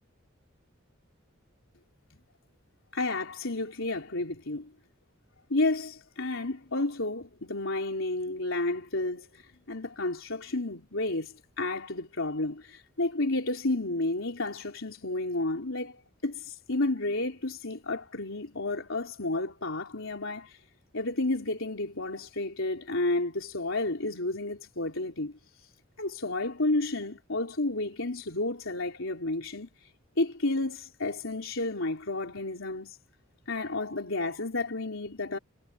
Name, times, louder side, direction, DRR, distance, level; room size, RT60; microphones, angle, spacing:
voice 1, 2.9-4.7 5.5-9.4 9.7-20.6 20.9-25.3 26.0-29.7 30.2-33.0 33.5-35.4, left 2 dB, 70° left, 4.1 m, -31 dB
head